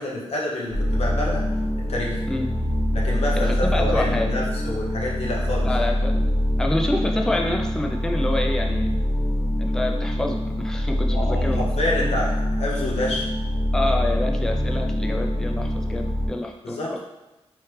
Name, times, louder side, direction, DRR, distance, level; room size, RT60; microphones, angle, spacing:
voice 1, 0.0-1.4 1.9-2.2 2.9-5.7 11.1-13.3 16.6-17.0, left 1 dB, 75° left, -3 dB, 0.8 m, -28 dB
sound 1, 0.7-16.3, left 1 dB, 25° left, 1.1 m, -24 dB
voice 2, 2.3-2.7 3.3-4.4 5.6-6.2 6.6-8.9 9.6-11.6 13.7-17.0, left 1 dB, 5° left, 2 dB, 0.4 m, -27 dB
3.2 x 3.0 x 3.2 m, 1.1 s
wide cardioid pair, 85°, 11 cm